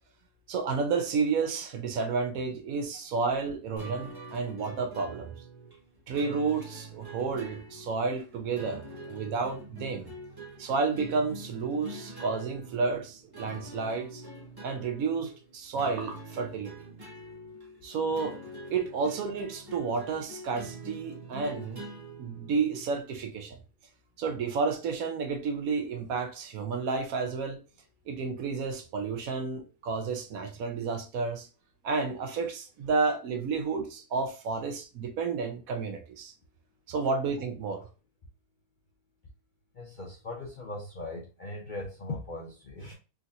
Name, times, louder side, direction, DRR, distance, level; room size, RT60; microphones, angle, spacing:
voice 1, 0.5-5.3 6.1-10.1 10.6-14.2 14.6-16.7 17.8-18.4 18.7-21.9 22.2-23.6 24.2-27.6 28.1-31.5 31.8-36.3 36.9-37.8, right 4 dB, 70° right, 1.1 m, -31 dB
sound 1, 3.8-23.0, right 2 dB, 15° right, 1.0 m, -45 dB
voice 2, 39.7-42.9, left 2 dB, 50° left, 0.5 m, -39 dB
3.7 x 2.9 x 2.5 m
omnidirectional pair, 1.6 m